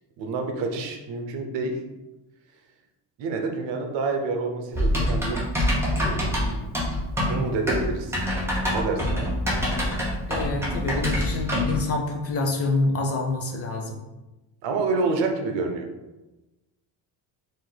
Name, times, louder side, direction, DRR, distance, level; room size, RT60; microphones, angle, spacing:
voice 1, 0.2-1.8 3.2-5.4 5.9-6.6 7.3-8.2 8.7-9.2 14.6-15.9, right 3 dB, 70° right, 4 dB, 0.9 m, -28 dB
Typing, 4.7-11.8, equal, 5° right, 0.9 m, -25 dB
voice 2, 10.3-14.0, left 3 dB, 35° left, 2 dB, 0.5 m, -27 dB
4.7 x 2.6 x 4.0 m, 1.0 s
cardioid pair, 160°, 45 cm